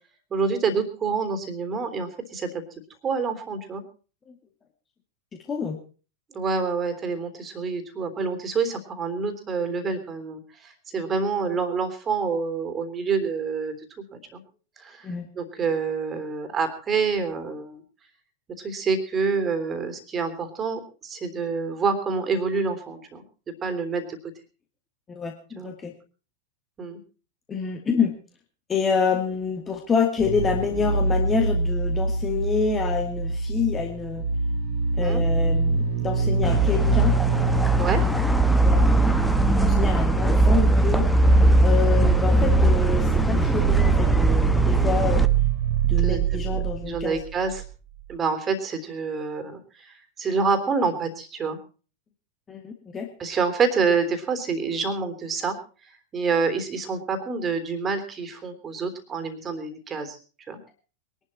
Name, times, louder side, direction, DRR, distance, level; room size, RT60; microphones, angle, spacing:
voice 1, 0.3-2.6 3.0-3.8 6.3-13.8 14.3-14.4 14.8-15.1 15.4-17.8 18.6-23.2 23.6-24.2 25.6-25.7 26.8-27.0 35.0-35.2 37.8-38.0 42.0-42.2 46.0-47.6 48.1-51.6 53.2-55.6 56.1-60.2 60.5-60.6, right 5 dB, 25° right, 8 dB, 3.4 m, -27 dB
voice 2, 5.5-5.8 15.0-15.3 25.1-25.9 27.5-28.1 28.7-34.3 35.0-37.1 38.6-39.1 39.6-41.1 41.6-45.3 45.8-47.2 52.5-53.1, left 5 dB, 20° left, 3 dB, 2.3 m, -27 dB
sound 1, 30.2-47.7 48.0-48.1, right 7 dB, 40° right, 2.6 m, -25 dB
sound 2, 36.4-45.3, equal, ahead, 1.3 m, -20 dB
22.5 x 12.0 x 4.4 m, 0.38 s
figure-of-eight pair, 90°, 0 cm